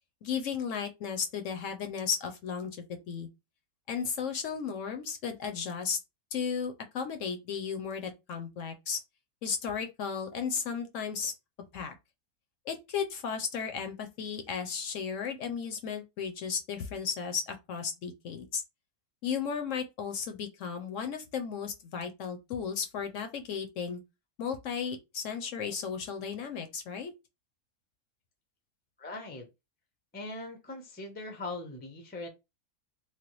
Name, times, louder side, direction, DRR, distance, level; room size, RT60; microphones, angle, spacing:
voice 1, 0.2-3.3 3.9-6.0 6.3-9.0 9.4-11.3 11.7-11.9 12.7-18.6 19.2-24.0 24.4-27.1, left 6 dB, 70° left, 0.9 m, -34 dB
voice 2, 29.0-29.5 30.1-32.3, left 2 dB, 15° left, 0.3 m, -40 dB
3.3 x 2.2 x 2.9 m
omnidirectional pair, 1.6 m